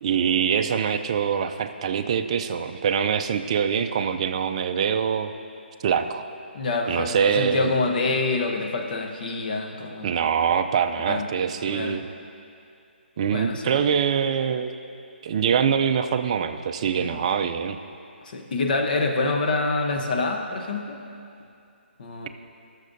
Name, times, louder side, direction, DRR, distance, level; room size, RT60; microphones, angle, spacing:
voice 1, 0.0-5.3 5.8-6.2 6.9-7.7 10.0-12.1 13.2-14.7 15.2-17.8, right 7 dB, 30° right, 7 dB, 0.4 m, -24 dB
voice 2, 6.5-10.1 11.1-11.3 11.7-12.0 13.3-13.8 17.0-17.2 18.2-21.0 22.0-22.3, left 3 dB, 45° left, 3 dB, 0.8 m, -26 dB
19.0 x 6.6 x 2.6 m, 2.5 s
hypercardioid pair, 160°, 6 cm